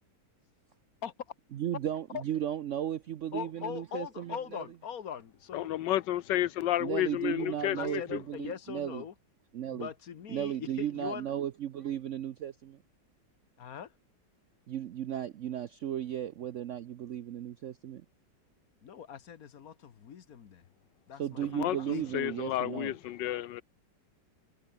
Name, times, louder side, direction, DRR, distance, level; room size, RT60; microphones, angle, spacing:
voice 1, 1.5-4.6 6.8-9.0 9.5-9.9 10.3-12.8 14.7-18.0 21.2-22.9, right 10 dB, 65° right, 0.7 m, -35 dB
voice 2, 3.3-5.7 7.4-9.1 9.7-11.3 13.6-13.9 18.8-20.6 21.1-22.1, left 8 dB, 55° left, 1.5 m, -41 dB
voice 3, 5.5-8.2 21.5-23.6, left 13 dB, 75° left, 1.4 m, -31 dB
omnidirectional pair, 1.9 m